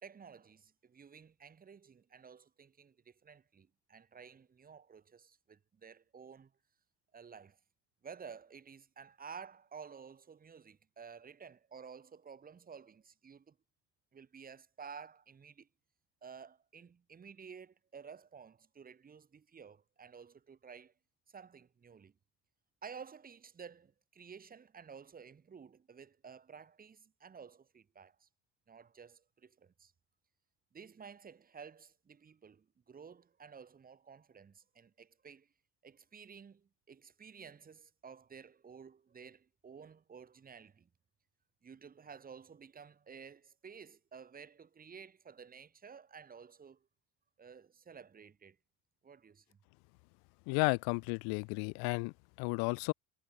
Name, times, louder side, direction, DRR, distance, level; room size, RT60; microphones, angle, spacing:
voice 1, 0.0-6.5 7.1-7.6 8.0-13.6 14.1-15.7 16.2-20.9 21.3-22.1 22.8-28.3 28.7-29.9 30.7-35.5 35.8-40.9 41.6-46.9 47.4-48.6 49.0-49.6, right 6 dB, 20° right, 4.2 m, -53 dB
voice 2, 50.5-52.1 52.4-52.9, left 34 dB, 70° left, 0.6 m, -33 dB
cardioid pair, 150°, 38 cm